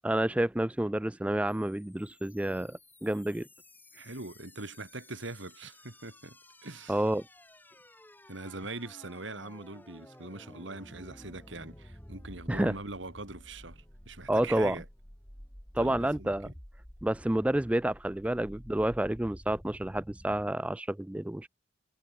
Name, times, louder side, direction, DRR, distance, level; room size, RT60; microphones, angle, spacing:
voice 1, 0.0-3.5 6.9-7.2 12.5-12.7 14.3-14.8 15.7-16.5 17.0-21.5, right 1 dB, 5° right, 0.3 m, -29 dB
sound 1, 1.5-20.5, equal, 10° left, 3.1 m, -52 dB
voice 2, 3.9-7.0 8.3-14.8 15.7-16.5, right 2 dB, 75° right, 3.3 m, -42 dB
head